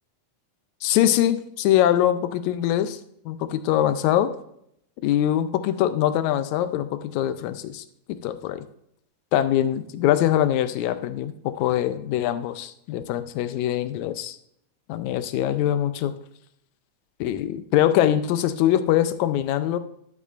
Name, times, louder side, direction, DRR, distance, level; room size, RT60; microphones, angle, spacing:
voice 1, 0.8-3.0 3.3-4.3 5.0-8.7 9.3-14.4 14.9-16.1 17.2-19.8, left 12 dB, 80° left, 11 dB, 1.9 m, -23 dB
11.0 x 8.2 x 2.5 m, 0.72 s
omnidirectional pair, 3.4 m